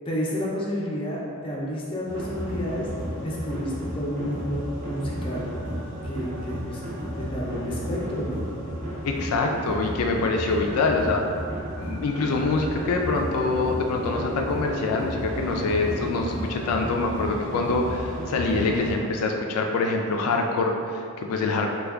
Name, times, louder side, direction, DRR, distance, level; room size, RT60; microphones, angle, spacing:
voice 1, 0.1-2.9 3.2-5.5 6.0-6.8 7.2-8.4, equal, 25° left, -5 dB, 0.5 m, -30 dB
sound 1, 2.1-19.0, equal, 35° right, 0.6 m, -33 dB
voice 2, 9.0-11.2 11.8-21.7, left 3 dB, 80° left, 2 dB, 0.3 m, -25 dB
3.3 x 2.2 x 3.5 m, 2.3 s
head